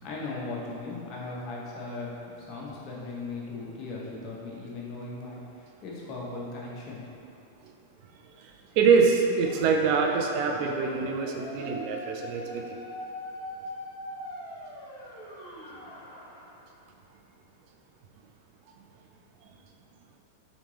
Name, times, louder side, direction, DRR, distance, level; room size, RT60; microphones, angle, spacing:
voice 1, 0.0-7.0, left 3 dB, 45° left, -4 dB, 0.9 m, -38 dB
voice 2, 8.8-12.6, right 5 dB, 55° right, 1 dB, 0.4 m, -24 dB
sound 1, 9.4-16.6, left 1 dB, 60° left, 1.1 m, -42 dB
3.6 x 3.6 x 3.2 m, 2.7 s
hypercardioid pair, 120°, 0 cm